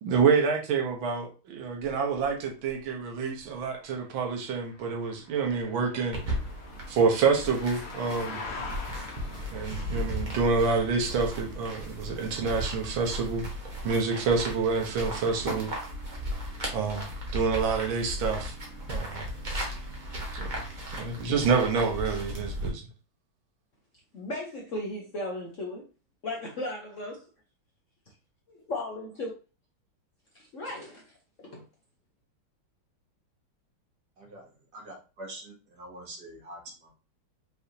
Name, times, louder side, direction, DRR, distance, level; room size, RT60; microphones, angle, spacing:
voice 1, 0.0-6.2 6.9-8.4 9.5-13.5 13.8-15.7 16.7-18.6 18.9-19.3 20.3-20.5 21.0-22.9, right 5 dB, 80° right, 1.7 m, -27 dB
sound 1, 1.8-19.2, left 4 dB, 70° left, 1.7 m, -47 dB
sound 2, 6.1-22.7, equal, 30° right, 1.0 m, -36 dB
voice 2, 24.1-25.9 26.2-27.3 28.5-29.3 30.5-31.1 31.4-31.6, left 1 dB, 55° left, 0.9 m, -36 dB
voice 3, 34.9-35.4 35.7-36.9, right 1 dB, 55° right, 2.1 m, -44 dB
5.4 x 3.4 x 2.7 m
omnidirectional pair, 2.2 m